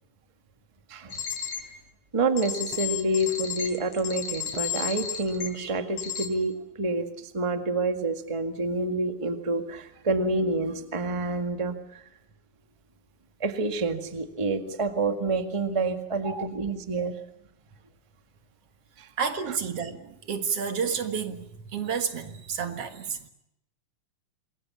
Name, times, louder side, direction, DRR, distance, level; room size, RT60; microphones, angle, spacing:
sound 1, 1.1-1.6 2.4-5.5 6.0-6.3, left 8 dB, 55° left, 4.7 m, -32 dB
voice 1, 2.1-11.7 13.4-17.1, right 2 dB, 15° right, 1.0 m, -28 dB
voice 2, 19.2-23.3, right 6 dB, 55° right, 2.3 m, -31 dB
27.5 x 21.0 x 8.5 m
omnidirectional pair, 3.7 m